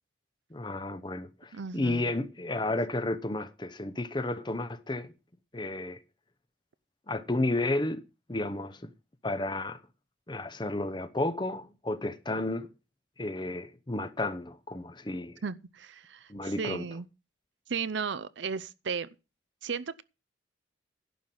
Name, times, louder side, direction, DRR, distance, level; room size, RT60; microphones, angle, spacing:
voice 1, 0.5-5.1 5.5-6.0 7.1-8.0 8.3-8.9 9.2-9.8 10.3-12.7 13.2-15.4 16.3-16.8, left 2 dB, 25° left, 0.8 m, -32 dB
voice 2, 1.5-2.1 15.4-17.1 17.7-19.1 19.6-20.0, right 5 dB, 70° right, 0.6 m, -35 dB
11.0 x 5.6 x 7.7 m
head